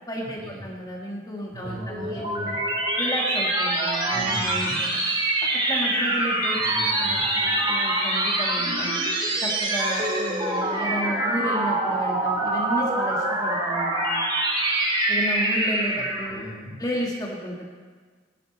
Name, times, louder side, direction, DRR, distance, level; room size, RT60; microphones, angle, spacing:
voice 1, 0.1-2.5 3.0-5.0 5.4-6.6 7.0-9.0 9.4-14.2 15.1-16.4 16.8-17.7, equal, 20° left, -2 dB, 1.7 m, -32 dB
voice 2, 1.5-2.6 4.1-4.8 6.6-7.4 15.9-16.8, equal, 80° right, -6 dB, 3.7 m, -38 dB
sound 1, 1.7-16.4, right 2 dB, 25° right, 2.4 m, -25 dB
19.5 x 12.0 x 4.0 m, 1.5 s
head